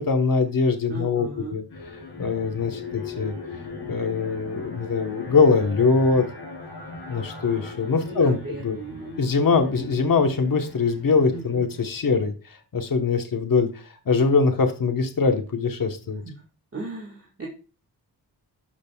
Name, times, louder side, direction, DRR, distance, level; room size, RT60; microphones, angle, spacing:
voice 1, 0.0-1.6 2.2-3.3 3.9-6.2 7.1-8.4 8.6-8.8 9.2-12.3 12.7-16.2, left 4 dB, 55° left, 6 dB, 1.2 m, -22 dB
voice 2, 0.9-1.6 8.0-9.2 11.3-11.6 16.2-16.3 16.7-17.5, right 3 dB, 35° right, -1 dB, 1.9 m, -36 dB
sound 1, 1.7-12.2, left 3 dB, 80° left, 3.9 m, -39 dB
12.5 x 5.1 x 2.3 m, 0.34 s
wide cardioid pair, 80°, 40 cm